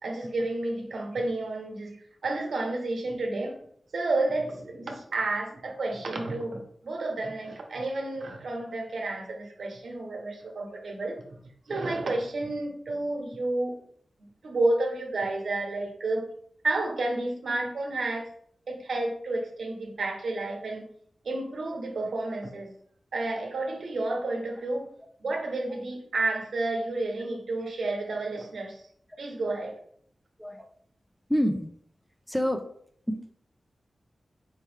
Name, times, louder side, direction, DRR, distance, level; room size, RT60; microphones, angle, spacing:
voice 1, 0.0-2.0 2.2-3.5 3.9-13.8 14.4-16.3 16.6-18.3 18.7-20.9 21.2-22.7 23.1-24.9 25.2-28.8 29.2-29.7, right 2 dB, 85° right, 2 dB, 0.9 m, -31 dB
voice 2, 31.3-31.7 32.3-32.6 33.1-33.3, equal, ahead, 6 dB, 0.4 m, -27 dB
4.6 x 2.9 x 3.3 m, 0.63 s
wide cardioid pair, 95°, 0 cm